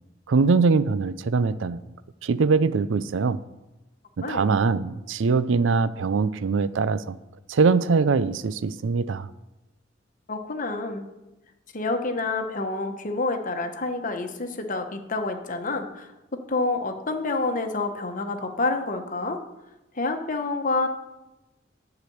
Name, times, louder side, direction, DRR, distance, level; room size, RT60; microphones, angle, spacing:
voice 1, 0.3-1.8 2.2-3.4 4.2-7.2 7.5-9.3, right 4 dB, 85° right, 16 dB, 0.5 m, -22 dB
voice 2, 10.3-11.1 11.7-16.1 16.5-19.4 19.9-20.9, left 3 dB, 45° left, 5 dB, 1.1 m, -28 dB
10.5 x 5.0 x 7.9 m, 1.0 s
head